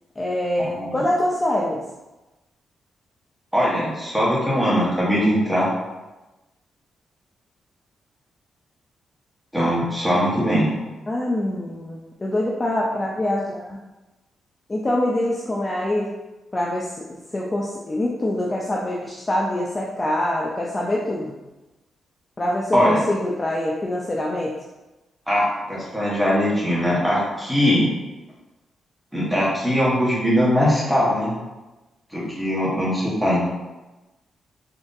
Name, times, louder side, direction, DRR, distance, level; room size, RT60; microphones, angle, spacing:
voice 1, 0.2-1.8 11.1-13.8 14.7-16.1 16.5-17.1 17.3-21.4 22.4-24.5, left 1 dB, 20° left, -3 dB, 0.4 m, -24 dB
voice 2, 3.5-5.7 9.5-10.7 22.7-23.0 25.3-27.8 29.1-31.3 32.1-33.4, equal, 5° right, -7 dB, 1.3 m, -21 dB
3.8 x 3.3 x 2.6 m, 1.1 s
cardioid pair, 130°, 0 cm